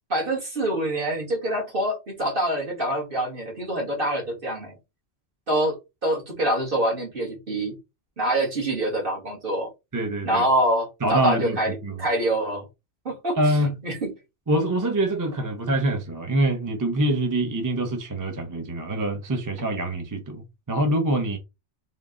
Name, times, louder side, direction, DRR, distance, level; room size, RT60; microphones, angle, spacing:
voice 1, 0.1-4.7 5.5-5.8 6.0-7.7 8.2-9.7 10.2-12.6 13.1-14.1, right 1 dB, 50° right, 1.8 m, -25 dB
voice 2, 9.9-10.5 11.0-12.0 13.4-13.7 14.5-20.4 20.7-21.4, right 1 dB, 20° right, 0.5 m, -25 dB
3.6 x 2.8 x 3.7 m
omnidirectional pair, 1.2 m